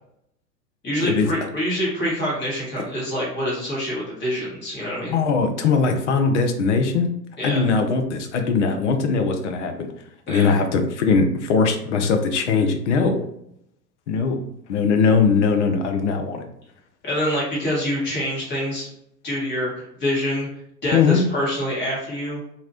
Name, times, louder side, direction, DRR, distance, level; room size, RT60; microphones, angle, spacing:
voice 1, 0.8-5.2 7.4-7.7 10.3-10.5 17.0-18.9 19.2-20.5 20.8-22.4, equal, 20° left, -5 dB, 1.5 m, -26 dB
voice 2, 5.1-7.1 7.4-9.9 10.3-13.2 14.1-14.4 14.7-16.4 20.9-21.2, left 5 dB, 45° left, 5 dB, 0.5 m, -20 dB
2.8 x 2.7 x 2.9 m, 0.76 s
figure-of-eight pair, 100°, 50 cm